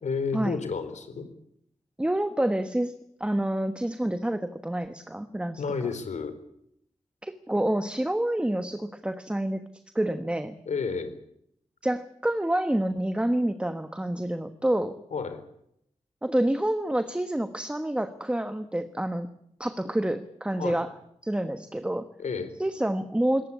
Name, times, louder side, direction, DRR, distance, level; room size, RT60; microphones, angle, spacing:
voice 1, 0.0-1.3 5.6-6.4 10.7-11.1 15.1-15.4 20.6-20.8 22.2-22.5, left 5 dB, 80° left, 10 dB, 4.2 m, -31 dB
voice 2, 2.0-2.9 3.2-5.6 7.2-9.7 9.9-10.5 11.8-15.0 16.2-19.3 19.6-20.9 21.2-22.1 22.6-23.5, right 1 dB, 10° right, 9 dB, 1.2 m, -28 dB
21.5 x 18.5 x 8.5 m, 0.74 s
wide cardioid pair, 140°, 12 cm